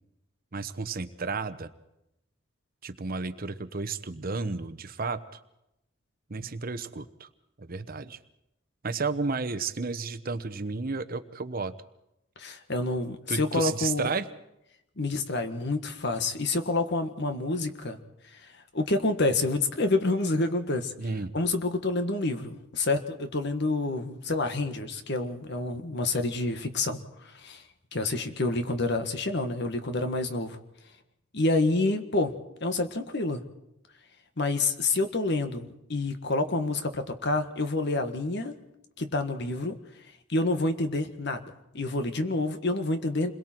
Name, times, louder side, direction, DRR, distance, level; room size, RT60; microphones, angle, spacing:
voice 1, 0.5-1.7 2.8-5.4 6.3-7.3 7.6-8.2 8.8-11.7 13.3-14.3 21.0-21.3, right 4 dB, 45° right, 11 dB, 0.9 m, -32 dB
voice 2, 12.4-14.1 15.0-18.0 18.7-20.9 21.3-27.0 27.3-27.6 27.9-30.6 31.3-32.3 32.6-33.4 34.4-38.5 39.0-39.8 40.3-43.3, left 2 dB, 55° left, 7 dB, 1.6 m, -28 dB
28.5 x 22.0 x 4.5 m, 0.85 s
head